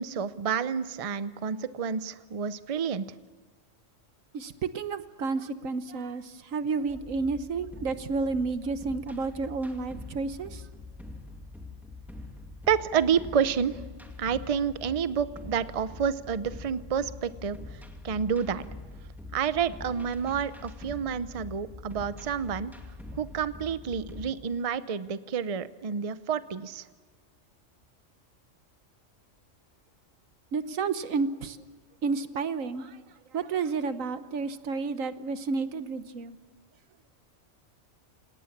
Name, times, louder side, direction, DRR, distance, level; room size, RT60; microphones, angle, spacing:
voice 1, 0.0-3.0 12.7-13.8 14.2-18.6 19.3-22.7 23.1-26.8, right 7 dB, 35° right, 14 dB, 0.6 m, -29 dB
voice 2, 4.3-10.6 30.5-31.6 32.0-33.0 33.3-36.4, right 4 dB, 85° right, 12 dB, 1.4 m, -31 dB
sound 1, 6.9-24.3, left 2 dB, ahead, 2.2 m, -44 dB
28.5 x 18.0 x 7.4 m, 1.4 s
omnidirectional pair, 1.3 m